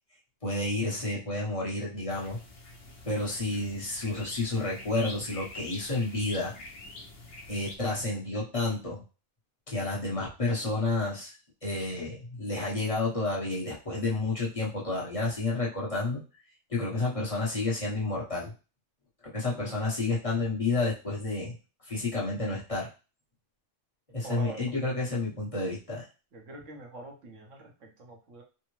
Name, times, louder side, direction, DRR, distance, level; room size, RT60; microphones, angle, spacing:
voice 1, 0.4-2.4 3.0-6.5 7.5-9.0 9.7-11.3 11.6-16.2 16.7-18.5 19.3-21.6 21.8-22.9 24.1-26.1, left 2 dB, 30° left, -5 dB, 1.0 m, -30 dB
sound 1, 2.1-7.8, left 2 dB, 60° left, 1.0 m, -45 dB
voice 2, 24.2-24.7 26.3-28.4, right 2 dB, 70° right, 0 dB, 1.3 m, -44 dB
3.4 x 2.1 x 3.1 m, 0.32 s
omnidirectional pair, 1.3 m